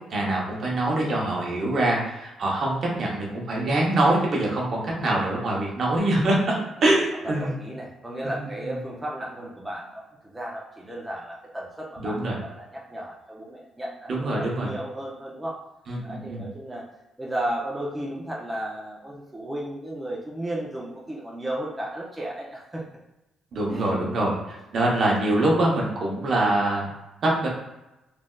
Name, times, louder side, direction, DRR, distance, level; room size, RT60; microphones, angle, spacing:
voice 1, 0.1-7.6 8.2-8.3 12.0-12.4 14.1-14.7 15.9-16.4 23.5-26.9 27.2-27.5, right 1 dB, 55° right, -2 dB, 0.8 m, -24 dB
voice 2, 7.2-15.6 16.0-16.8 17.2-22.8 23.7-24.4, right 1 dB, 15° right, -4 dB, 0.5 m, -34 dB
3.2 x 2.6 x 2.3 m, 0.94 s
cardioid pair, 90°, 0 cm